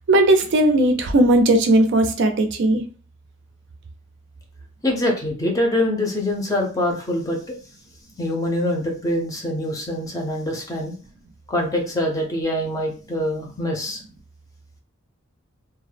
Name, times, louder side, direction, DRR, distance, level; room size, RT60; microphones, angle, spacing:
voice 1, 0.1-2.8, right 1 dB, 55° right, 6 dB, 0.4 m, -17 dB
voice 2, 4.8-7.6 8.2-10.9 11.5-14.0, left 1 dB, 15° left, 1 dB, 0.5 m, -24 dB
2.2 x 2.0 x 3.2 m, 0.38 s
head